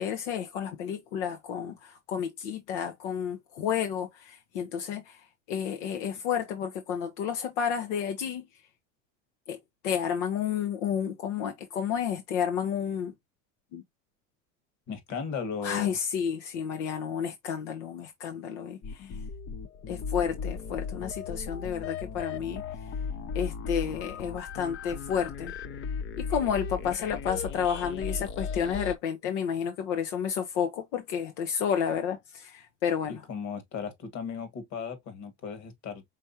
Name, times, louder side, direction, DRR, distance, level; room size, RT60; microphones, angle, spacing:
voice 1, 0.0-8.5 9.5-9.6 9.8-13.1 13.7-13.8 15.6-19.2 19.9-22.6 23.3-25.5 26.2-33.2, left 8 dB, 85° left, 0.9 m, -31 dB
voice 2, 14.9-16.0 33.1-36.0, left 6 dB, 55° left, 1.9 m, -36 dB
sound 1, 18.8-29.0, left 5 dB, 35° left, 0.6 m, -36 dB
5.1 x 3.5 x 2.7 m
supercardioid pair, 110°, 34 cm